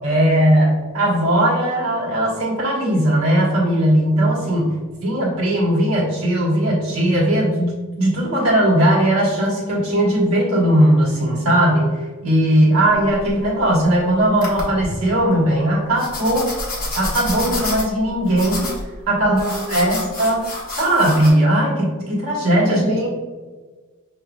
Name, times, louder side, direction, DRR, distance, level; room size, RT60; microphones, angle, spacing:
voice 1, 0.0-4.7 5.0-11.9 12.2-16.5 16.9-18.7 19.1-19.4 19.7-20.5 20.7-22.8, right 1 dB, 75° right, -5 dB, 1.5 m, -18 dB
sound 1, 12.8-13.9 14.4-14.9 16.0-21.3, left 2 dB, 40° left, 1.1 m, -29 dB
voice 2, 19.2-20.0 22.7-23.1, right 1 dB, 55° right, -9 dB, 1.0 m, -26 dB
6.0 x 3.0 x 2.3 m, 1.3 s
head